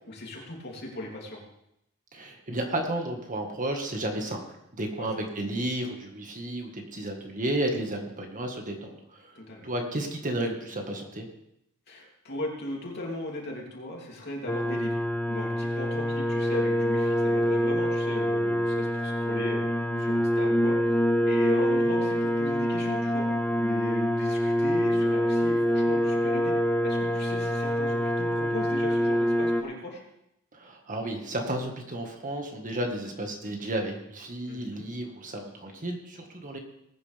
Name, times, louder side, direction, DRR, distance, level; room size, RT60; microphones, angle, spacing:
voice 1, 0.1-1.4 5.0-5.3 9.3-9.7 11.9-15.0 15.3-19.6 20.0-20.8 21.2-23.3 23.6-26.6 26.8-30.0 34.5-34.9, left 1 dB, 50° left, -2 dB, 3.1 m, -37 dB
voice 2, 2.1-4.4 4.7-9.4 9.6-11.2 30.5-36.6, right 1 dB, 35° right, 3 dB, 1.7 m, -32 dB
sound 1, 14.5-29.6, equal, 10° left, 1.1 m, -25 dB
19.5 x 9.5 x 3.5 m, 0.81 s
head